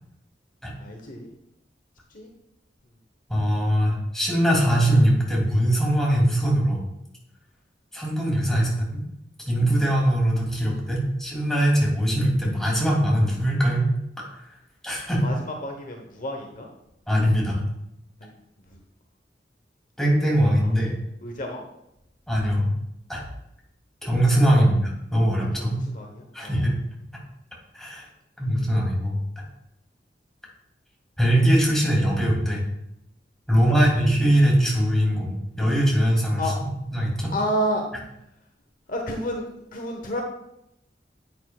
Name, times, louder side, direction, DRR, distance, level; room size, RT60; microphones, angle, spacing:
voice 1, 0.8-1.3 2.1-2.3 8.5-8.6 10.5-11.0 15.2-16.7 18.2-18.4 18.7-18.8 21.2-21.6 24.5-24.6 25.6-25.7 25.9-26.6 33.5-33.8 36.4-36.6 37.3-37.8 38.9-40.2, equal, 50° left, 2 dB, 1.0 m, -31 dB
voice 2, 3.3-6.8 7.9-9.0 9.5-13.9 14.8-15.3 17.1-17.6 20.0-20.9 22.3-22.6 23.1-23.2 24.0-24.8 25.1-25.7 26.3-26.7 27.7-28.1 28.4-29.2 31.2-32.6 33.5-37.3, equal, 5° left, -4 dB, 2.8 m, -21 dB
10.5 x 8.6 x 2.4 m, 0.81 s
head